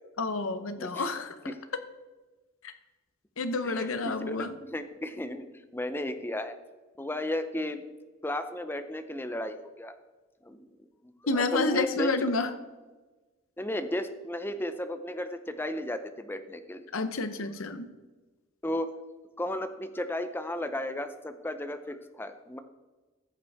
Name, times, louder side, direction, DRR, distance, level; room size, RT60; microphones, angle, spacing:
voice 1, 0.2-1.5 2.6-2.7 3.4-4.5 11.3-12.5 16.9-17.9, left 3 dB, 70° left, 10 dB, 0.8 m, -29 dB
voice 2, 0.8-1.1 1.5-1.6 3.6-5.5 5.7-6.5 7.0-7.8 8.2-9.9 10.4-10.8 11.0-12.3 13.6-16.9 18.6-18.9 19.4-22.6, left 1 dB, 10° left, 9 dB, 0.6 m, -34 dB
14.0 x 7.9 x 3.5 m, 1.2 s
head